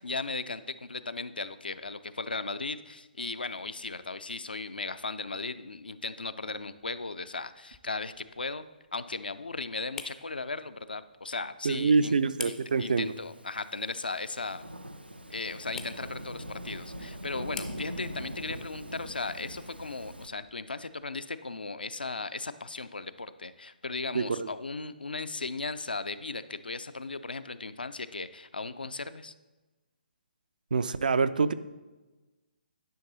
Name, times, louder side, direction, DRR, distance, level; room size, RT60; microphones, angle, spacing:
voice 1, 0.0-8.6 8.9-12.2 12.4-12.5 12.8-14.6 15.3-29.3, left 3 dB, 70° left, 12 dB, 0.5 m, -37 dB
sound 1, 6.4-21.2, left 6 dB, 10° left, 0.4 m, -50 dB
voice 2, 11.6-13.1 24.1-24.5 30.7-31.5, right 4 dB, 55° right, 13 dB, 0.5 m, -26 dB
Thunderstorm / Rain, 12.6-20.3, equal, 90° right, 0.7 m, -42 dB
10.5 x 5.9 x 4.0 m, 1.2 s
figure-of-eight pair, 135°, 5 cm